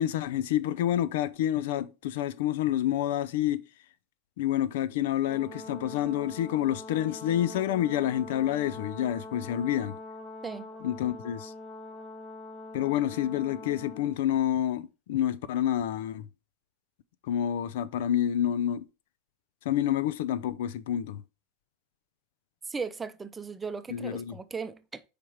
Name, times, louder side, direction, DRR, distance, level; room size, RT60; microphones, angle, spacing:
voice 1, 0.0-3.6 4.4-9.9 10.8-11.5 12.7-16.3 17.3-18.8 19.7-21.2 23.9-24.3, left 11 dB, 80° left, 0.5 m, -28 dB
Brass instrument, 5.2-14.2, left 2 dB, 20° left, 2.7 m, -43 dB
voice 2, 22.7-25.0, right 5 dB, 15° right, 0.6 m, -37 dB
5.0 x 4.6 x 5.6 m
supercardioid pair, 110°, 0 cm